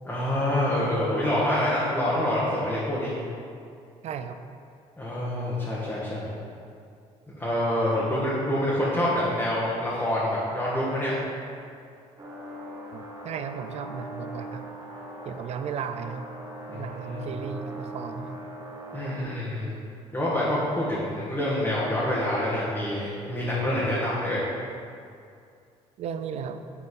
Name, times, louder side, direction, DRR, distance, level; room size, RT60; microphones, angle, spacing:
voice 1, 0.1-3.1 5.0-6.3 7.3-11.1 16.7-17.2 18.9-19.7 20.1-24.5, left 1 dB, 15° left, -9 dB, 1.6 m, -26 dB
voice 2, 4.0-4.4 12.9-14.7 15.2-16.3 16.7-18.5 26.0-26.7, right 7 dB, 55° right, 9 dB, 0.5 m, -35 dB
sound 1, 12.2-19.2, right 1 dB, 25° right, 1.2 m, -40 dB
6.8 x 4.3 x 5.3 m, 2.4 s
cardioid pair, 90°, 13 cm